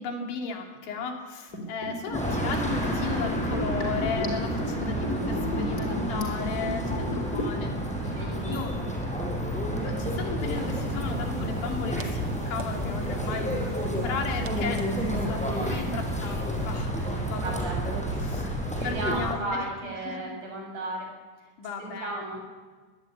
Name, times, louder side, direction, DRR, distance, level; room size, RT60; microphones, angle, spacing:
voice 1, 0.0-8.8 9.8-16.9 17.3-17.8 18.2-19.6 20.1-20.3 21.6-22.2, left 5 dB, 80° left, 2 dB, 5.4 m, -35 dB
Liquid, 1.5-7.7 7.9-8.0, left 2 dB, 20° left, 4.5 m, -33 dB
sound 1, 2.1-19.3, equal, ahead, 5.2 m, -30 dB
voice 2, 5.6-6.1 8.2-8.9 17.4-17.8 18.7-21.1 21.4-21.5 21.8-22.4, right 2 dB, 45° right, 0 dB, 8.4 m, -35 dB
sound 2, 10.4-16.8, right 3 dB, 90° right, 1.2 m, -43 dB
22.5 x 18.5 x 10.0 m, 1.4 s
omnidirectional pair, 5.2 m